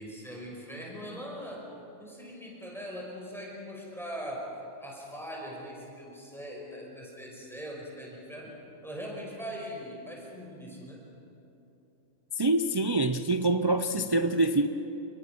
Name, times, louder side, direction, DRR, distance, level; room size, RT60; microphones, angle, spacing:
voice 1, 0.0-1.7 2.0-4.5 4.8-8.5 8.8-11.0, equal, ahead, 5.7 m, -41 dB
voice 2, 12.4-14.7, right 2 dB, 30° right, 0.5 m, -25 dB
29.0 x 22.5 x 6.1 m
omnidirectional pair, 1.4 m